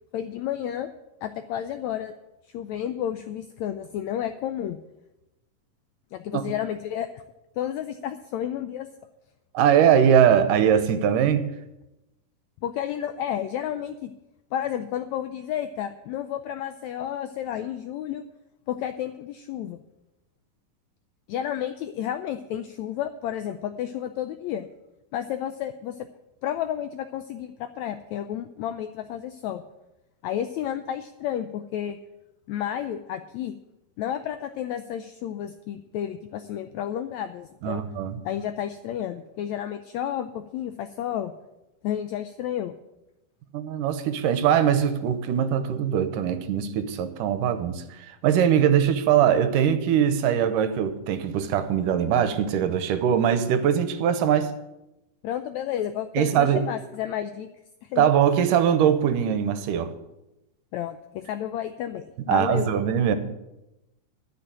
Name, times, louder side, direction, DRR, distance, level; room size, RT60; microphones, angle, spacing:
voice 1, 0.1-0.9 1.2-2.1 2.5-4.8 6.1-7.2 7.6-8.9 12.6-14.1 14.5-18.2 18.7-19.8 21.3-24.7 25.1-26.1 26.4-29.6 30.2-32.0 32.5-33.5 34.0-37.8 38.2-41.3 41.8-42.7 55.2-57.5 57.8-58.1 60.7-62.7, left 10 dB, 90° left, 9 dB, 1.5 m, -31 dB
voice 2, 9.5-11.5 37.6-38.2 43.5-54.5 56.1-56.7 58.0-59.9 62.2-63.2, right 9 dB, 75° right, 11 dB, 2.4 m, -21 dB
12.5 x 6.7 x 8.8 m, 0.95 s
omnidirectional pair, 3.9 m